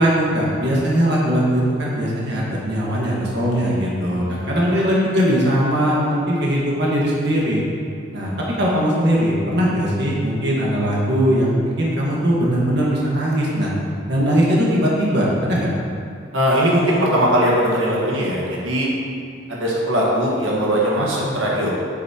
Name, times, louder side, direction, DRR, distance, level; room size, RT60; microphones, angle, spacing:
voice 1, 0.0-7.6 8.1-8.3 8.6-13.7 14.1-15.7 21.0-21.3, equal, 60° right, -5 dB, 1.6 m, -20 dB
voice 2, 16.3-18.9 19.5-21.7, equal, 85° right, -5 dB, 1.6 m, -19 dB
9.1 x 8.2 x 2.9 m, 2.4 s
head